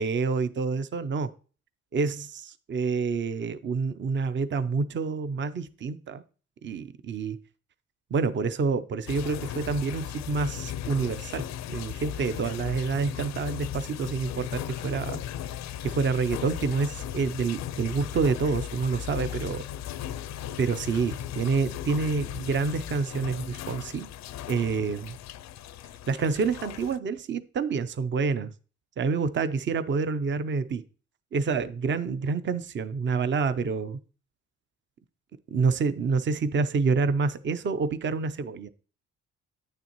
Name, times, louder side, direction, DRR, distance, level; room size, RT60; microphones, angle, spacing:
voice 1, 0.0-1.3 1.9-6.2 6.6-7.4 8.1-15.2 15.8-19.7 20.6-24.1 24.5-25.2 26.1-28.5 29.0-30.8 31.3-34.0 35.5-38.7, right 4 dB, 40° right, 0.6 m, -28 dB
sound 1, 9.1-27.0, left 11 dB, 65° left, 0.4 m, -37 dB
9.4 x 6.7 x 3.0 m
cardioid pair, 90°, 30 cm